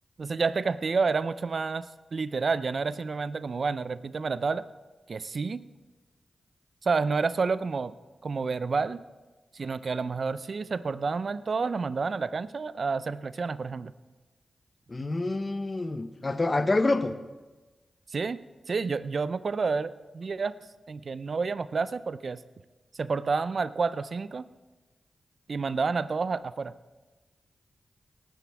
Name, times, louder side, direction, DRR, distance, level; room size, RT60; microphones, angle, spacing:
voice 1, 0.2-4.6 5.1-5.6 6.8-7.9 8.2-9.0 9.5-13.9 18.1-18.4 18.7-20.5 20.9-22.4 22.9-24.5 25.5-26.7, right 4 dB, 65° right, 0.5 m, -29 dB
voice 2, 14.9-17.2, left 2 dB, 40° left, 0.8 m, -27 dB
19.0 x 10.0 x 3.5 m
cardioid pair, 50°, 0 cm